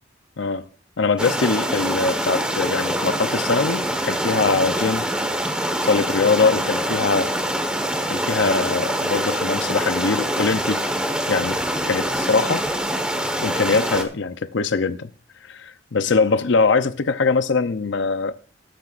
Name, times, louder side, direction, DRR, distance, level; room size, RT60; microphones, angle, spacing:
voice 1, 0.4-0.7 1.0-5.1 5.8-7.3 8.1-10.8 11.3-11.6 11.9-12.7 13.4-15.1 15.5-18.3, left 4 dB, 65° left, 0.6 m, -22 dB
sound 1, 1.2-14.0, equal, 5° right, 1.2 m, -24 dB
20.5 x 9.7 x 2.5 m
head